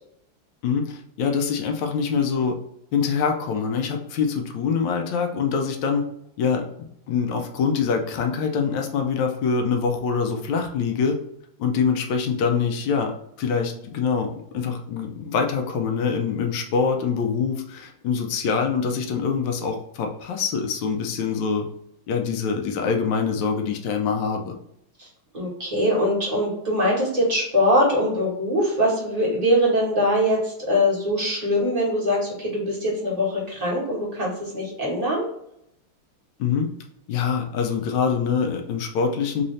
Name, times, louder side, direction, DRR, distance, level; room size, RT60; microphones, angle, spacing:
voice 1, 0.6-2.6 2.9-6.0 6.4-6.7 7.1-11.2 11.6-13.1 13.4-21.7 22.1-24.5 36.4-36.7 37.1-39.4, left 6 dB, 75° left, 3 dB, 1.1 m, -24 dB
voice 2, 25.3-35.3, equal, 25° right, -5 dB, 1.1 m, -22 dB
3.7 x 2.7 x 3.1 m, 0.75 s
omnidirectional pair, 2.4 m